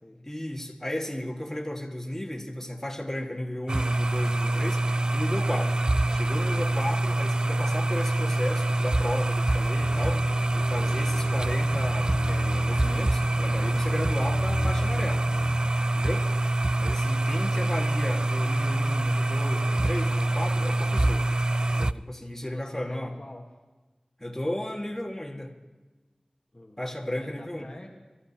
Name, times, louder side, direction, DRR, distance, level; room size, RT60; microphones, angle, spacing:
voice 1, 0.2-5.8 6.1-10.2 10.5-15.3 15.9-16.3 16.8-21.2 21.8-23.1 24.2-25.5 26.8-27.7, left 1 dB, 15° left, 0 dB, 1.8 m, -34 dB
sound 1, 3.7-21.9, right 2 dB, 40° right, 0.3 m, -25 dB
sound 2, 9.8-15.7, left 3 dB, 55° left, 0.5 m, -37 dB
voice 2, 22.4-23.4 26.5-27.9, left 1 dB, 40° left, -1 dB, 1.4 m, -45 dB
24.5 x 13.0 x 2.9 m, 1.2 s
wide cardioid pair, 50°, 2 cm